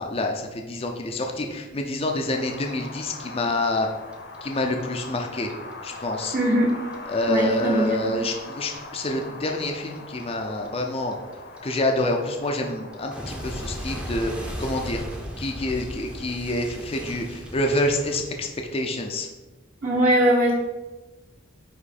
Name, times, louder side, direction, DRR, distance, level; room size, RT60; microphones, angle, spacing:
voice 1, 0.0-3.9 4.4-5.5 5.8-6.3 7.1-11.2 11.6-15.0 15.4-19.3, left 1 dB, 30° left, 2 dB, 0.5 m, -27 dB
Wind, 2.2-16.3, left 2 dB, 55° left, 0.9 m, -41 dB
Clock, 3.4-6.4 6.7-9.7 10.0-18.8, equal, 5° right, 0.7 m, -36 dB
voice 2, 6.3-6.7 7.3-7.9 19.8-20.5, right 1 dB, 45° right, -4 dB, 1.1 m, -20 dB
9.4 x 3.2 x 4.2 m, 1.1 s
head